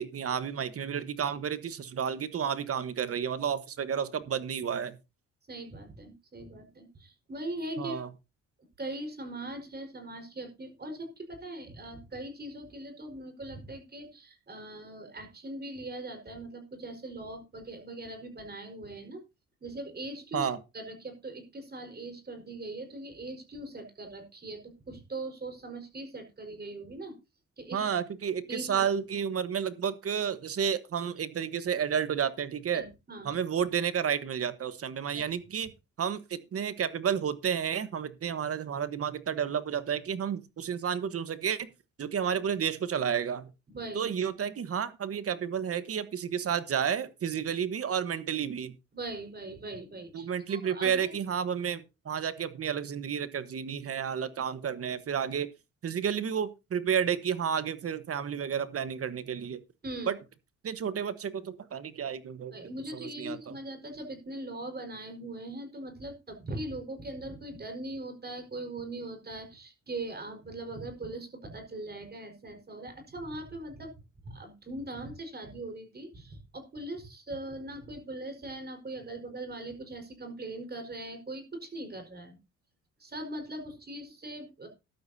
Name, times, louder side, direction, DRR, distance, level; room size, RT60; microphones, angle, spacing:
voice 1, 0.0-5.0 7.8-8.1 20.3-20.6 27.7-32.8 33.2-35.7 36.0-41.7 42.0-43.5 43.9-48.7 50.1-55.5 55.8-59.6 60.1-60.2 60.6-62.6 62.9-63.6, right 8 dB, 50° right, 14 dB, 1.2 m, -31 dB
voice 2, 5.5-8.0 8.8-19.2 19.6-20.5 20.7-27.2 27.6-27.8 28.5-28.9 32.7-33.4 35.1-35.3 43.7-44.1 48.9-51.1 59.8-60.1 62.5-73.9 74.2-82.4 83.0-84.7, right 2 dB, 30° right, 5 dB, 4.6 m, -40 dB
13.5 x 12.0 x 2.8 m, 0.27 s
cardioid pair, 90°, 30 cm